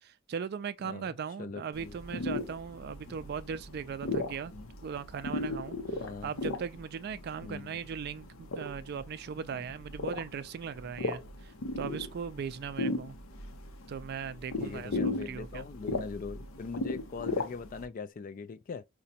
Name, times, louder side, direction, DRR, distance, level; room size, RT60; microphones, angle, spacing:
voice 1, 0.0-4.5 4.8-13.2 13.9-15.7, right 6 dB, 50° right, 0.3 m, -39 dB
voice 2, 0.8-2.2 3.0-3.1 4.5-4.7 6.0-6.3 7.4-7.8 9.5-9.6 14.6-18.8, left 4 dB, 40° left, 0.3 m, -41 dB
sound 1, 1.7-17.9, left 2 dB, 80° left, 0.6 m, -37 dB
4.9 x 2.2 x 2.7 m
head